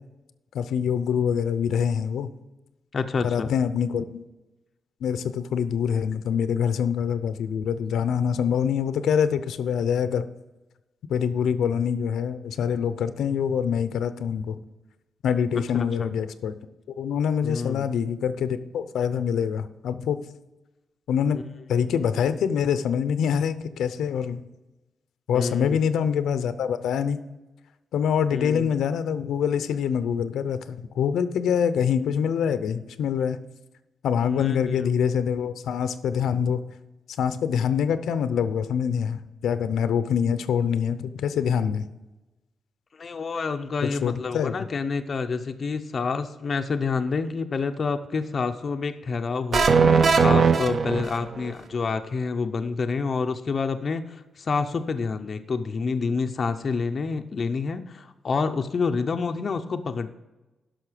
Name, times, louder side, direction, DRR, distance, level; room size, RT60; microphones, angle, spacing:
voice 1, 0.5-2.3 3.2-4.2 5.0-10.3 11.1-14.6 15.2-16.5 16.9-20.2 21.1-21.4 21.7-24.4 25.3-27.2 27.9-33.4 34.0-36.6 37.2-41.9 44.0-44.5, left 7 dB, 85° left, 12 dB, 0.6 m, -25 dB
voice 2, 2.9-3.5 15.5-15.6 16.0-16.1 17.4-17.9 21.3-21.4 25.3-25.8 28.3-28.8 34.2-34.9 42.9-49.7 49.9-60.1, left 4 dB, 35° left, 7 dB, 0.5 m, -28 dB
sound 1, 49.5-51.5, right 5 dB, 40° right, 0.6 m, -19 dB
11.0 x 6.3 x 5.0 m, 1.1 s
wide cardioid pair, 180°, 0 cm